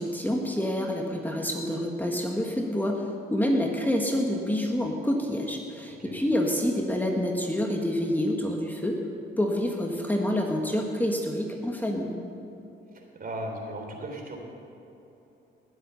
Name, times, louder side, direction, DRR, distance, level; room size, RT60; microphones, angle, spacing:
voice 1, 0.0-9.0 9.4-12.2, left 1 dB, 10° left, 1 dB, 1.6 m, -27 dB
voice 2, 13.2-14.4, right 1 dB, 45° right, 2 dB, 3.4 m, -36 dB
19.5 x 7.8 x 7.0 m, 3.0 s
cardioid pair, 90°, 20 cm